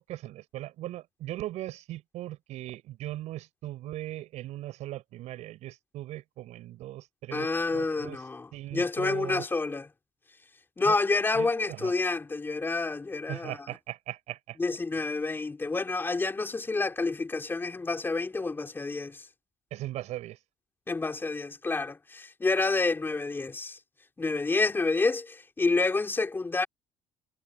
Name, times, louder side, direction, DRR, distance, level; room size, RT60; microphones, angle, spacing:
voice 1, 0.0-8.2 8.5-9.5 10.8-11.0 11.3-11.9 13.3-14.6 19.7-20.4, right 15 dB, 70° right, 7.7 m, -39 dB
voice 2, 7.3-9.9 10.8-13.6 14.6-19.3 20.9-23.8 24.2-26.7, left 3 dB, 15° left, 3.3 m, -29 dB
cardioid pair, 115°, 12 cm